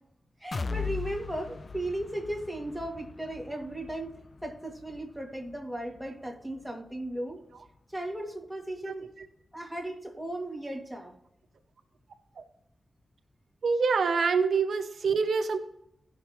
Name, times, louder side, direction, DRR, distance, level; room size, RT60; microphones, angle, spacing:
voice 1, 0.4-7.4 7.9-9.1 9.5-11.1, right 1 dB, ahead, -1 dB, 2.3 m, -36 dB
sound 1, 0.5-8.3 8.7-8.8 9.2-9.3, left 5 dB, 55° left, 0.4 m, -41 dB
voice 2, 13.6-15.6, right 5 dB, 80° right, 7 dB, 0.7 m, -25 dB
16.5 x 5.9 x 3.1 m, 0.79 s
cardioid pair, 65°, 0 cm